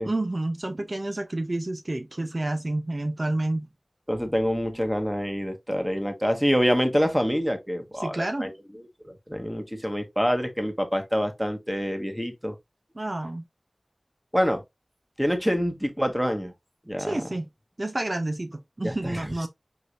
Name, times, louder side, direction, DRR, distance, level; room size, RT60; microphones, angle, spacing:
voice 1, 0.0-3.7 8.0-8.5 12.9-13.4 17.0-17.5 17.8-19.5, right 2 dB, 50° right, 0.7 m, -29 dB
voice 2, 4.1-8.5 9.3-12.5 14.3-14.6 15.2-16.5 16.9-17.2 18.8-19.3, equal, 5° right, 1.2 m, -26 dB
4.9 x 4.3 x 2.4 m
wide cardioid pair, 40°, 0 cm